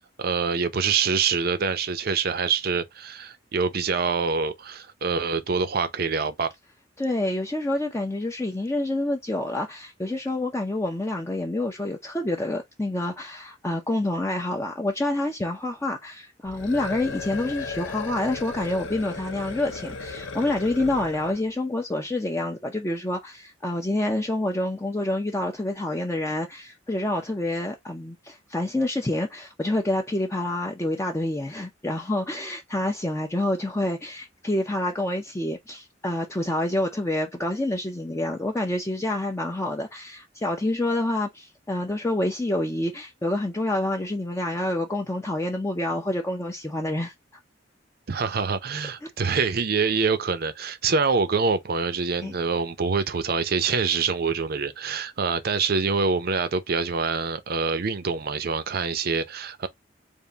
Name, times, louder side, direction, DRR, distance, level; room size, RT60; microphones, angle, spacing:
voice 1, 0.2-6.5 48.1-59.7, right 5 dB, 55° right, 0.6 m, -25 dB
voice 2, 7.0-47.1 52.2-52.3, left 1 dB, 15° left, 0.5 m, -27 dB
sound 1, 16.4-21.5, left 4 dB, 85° left, 0.7 m, -36 dB
3.5 x 2.6 x 3.9 m
head